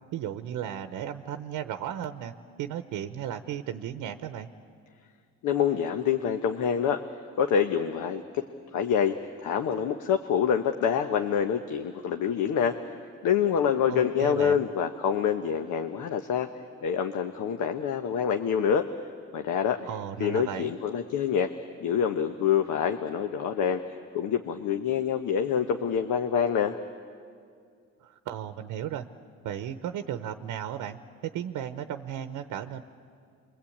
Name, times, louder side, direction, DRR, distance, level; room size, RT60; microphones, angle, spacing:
voice 1, 0.1-4.5 13.9-14.6 19.8-20.7 28.0-29.0 29.4-31.0 31.3-32.8, right 10 dB, 90° right, 9 dB, 0.9 m, -35 dB
voice 2, 5.4-7.0 7.4-8.4 8.7-9.1 9.4-12.8 13.2-16.5 16.8-18.9 19.3-19.8 20.2-21.5 21.8-23.8 24.1-26.7, left 8 dB, 80° left, 6 dB, 1.1 m, -26 dB
26.5 x 22.5 x 8.6 m, 2.2 s
cardioid pair, 90°, 30 cm